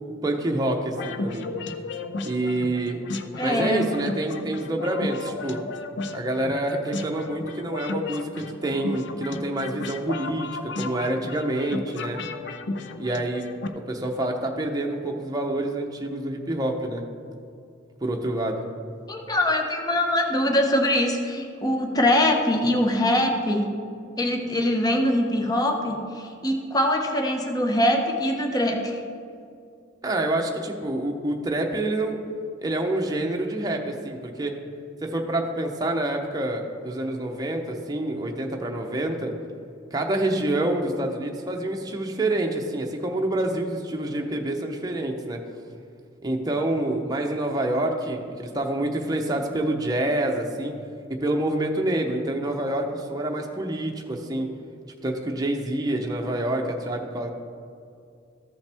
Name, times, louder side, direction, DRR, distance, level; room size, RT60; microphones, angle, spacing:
voice 1, 0.2-1.5 2.2-3.0 3.4-5.6 6.1-12.2 13.0-13.5 13.9-17.0 18.0-18.6 30.0-32.2 32.6-34.6 35.0-39.3 39.9-45.4 46.2-50.7 51.2-54.5 55.0-57.3, right 1 dB, 20° right, 1 dB, 0.7 m, -27 dB
sound 1, 0.9-13.7, left 3 dB, 60° left, 0.5 m, -34 dB
voice 2, 3.4-3.9 19.1-23.7 24.2-29.0, left 1 dB, 20° left, 3 dB, 0.7 m, -23 dB
14.0 x 5.5 x 3.4 m, 2.4 s
head